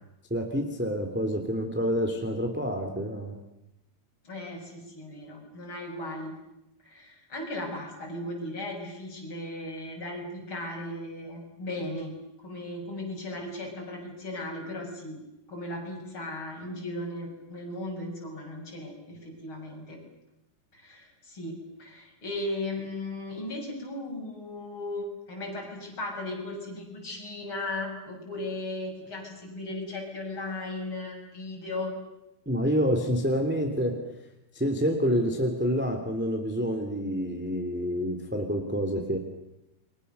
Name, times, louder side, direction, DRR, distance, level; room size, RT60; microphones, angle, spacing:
voice 1, 0.3-3.3 32.5-34.0 34.5-39.2, equal, 5° right, 3 dB, 1.9 m, -28 dB
voice 2, 4.2-6.4 6.8-12.1 12.4-15.2 15.5-20.0 20.7-31.9, left 1 dB, 30° left, 0 dB, 7.3 m, -36 dB
29.5 x 24.0 x 6.9 m, 0.91 s
omnidirectional pair, 4.8 m